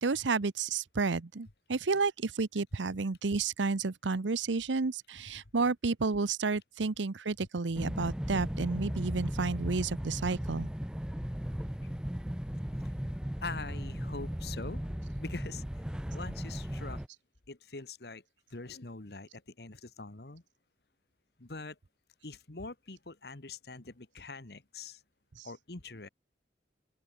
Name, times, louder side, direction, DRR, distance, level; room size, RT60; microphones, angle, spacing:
voice 1, 0.0-10.7 25.4-25.5, right 4 dB, 90° right, 0.8 m, -31 dB
sound 1, 7.7-17.1, equal, 5° right, 0.5 m, -36 dB
voice 2, 13.4-14.8 15.2-15.6 16.1-17.0 17.5-18.2 18.5-20.4 21.4-21.8 22.2-25.0 25.4-26.1, left 3 dB, 60° left, 1.4 m, -43 dB
open air
head